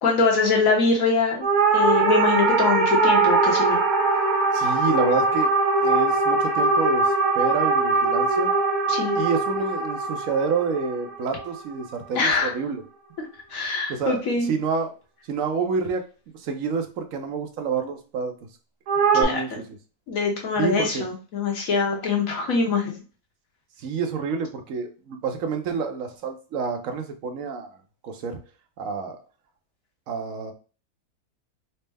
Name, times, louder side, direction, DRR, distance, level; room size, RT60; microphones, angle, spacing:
voice 1, 0.0-1.4 1.7-3.8 8.9-9.2 12.1-12.5 13.5-14.5 19.2-19.6 20.1-23.0, left 4 dB, 65° left, 0 dB, 1.3 m, -23 dB
sound 1, 1.4-11.9 18.9-19.2, right 3 dB, 80° right, 1.3 m, -21 dB
voice 2, 4.5-5.5 5.8-8.5 9.1-12.8 13.6-14.2 14.5-14.9 15.3-16.0 16.3-18.3 19.1-19.5 20.6-21.0 23.8-27.8 28.0-28.4 28.8-29.2 30.1-30.5, right 5 dB, 65° right, 5 dB, 1.0 m, -28 dB
4.2 x 2.0 x 3.4 m, 0.36 s
omnidirectional pair, 1.6 m